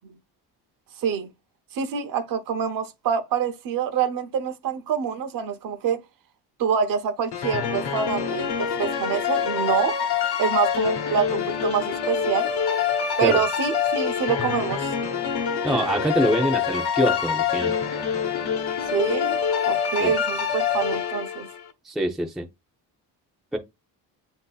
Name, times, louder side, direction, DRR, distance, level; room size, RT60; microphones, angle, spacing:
voice 1, 1.7-6.0 6.6-10.0 10.4-12.5 13.2-14.9 18.9-19.4 19.7-21.5, right 7 dB, 55° right, 0.7 m, -26 dB
sound 1, 7.3-21.6, left 7 dB, 70° left, 1.0 m, -25 dB
voice 2, 15.6-17.7 20.0-20.1 21.9-22.5 23.5-23.6, right 1 dB, ahead, 0.4 m, -24 dB
7.9 x 2.7 x 2.2 m
cardioid pair, 155°, 40 cm